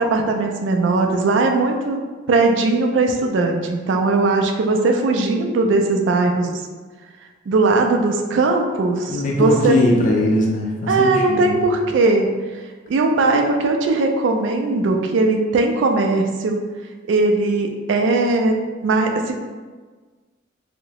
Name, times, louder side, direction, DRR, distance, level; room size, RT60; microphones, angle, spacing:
voice 1, 0.0-2.0 2.3-6.6 7.5-9.8 10.9-12.3 12.9-16.6 17.1-18.5 18.8-19.3, right 3 dB, 65° right, 3 dB, 0.3 m, -19 dB
voice 2, 9.1-11.6, left 1 dB, 40° left, -2 dB, 0.4 m, -20 dB
2.7 x 2.0 x 2.8 m, 1.4 s
head